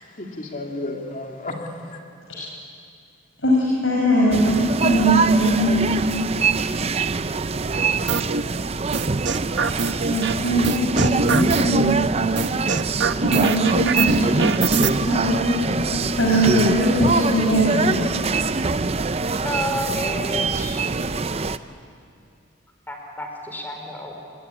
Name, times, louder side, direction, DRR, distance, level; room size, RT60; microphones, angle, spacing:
voice 1, 0.0-2.0, left 2 dB, 40° left, 1 dB, 3.1 m, -33 dB
voice 2, 3.4-5.9 10.1-12.0 13.1-15.6 16.2-18.1 18.4-18.5, right 1 dB, 85° left, -3 dB, 5.3 m, -21 dB
sound 1, 4.3-21.6, right 4 dB, 30° right, 0.6 m, -24 dB
sound 2, 8.1-8.4 8.9-10.3 10.6-11.8 12.4-14.9, right 4 dB, 60° right, 1.0 m, -23 dB
voice 3, 19.3-20.8 22.9-24.2, left 1 dB, 10° left, 2 dB, 4.2 m, -30 dB
26.5 x 21.0 x 9.8 m, 2.4 s
head